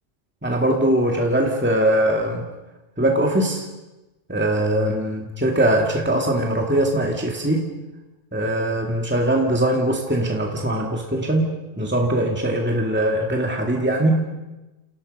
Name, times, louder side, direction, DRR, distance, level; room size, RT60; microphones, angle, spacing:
voice 1, 0.4-2.5 3.0-3.7 4.3-7.7 8.3-14.2, right 1 dB, 10° right, 1 dB, 2.2 m, -21 dB
29.0 x 29.0 x 5.4 m, 1.1 s
omnidirectional pair, 1.2 m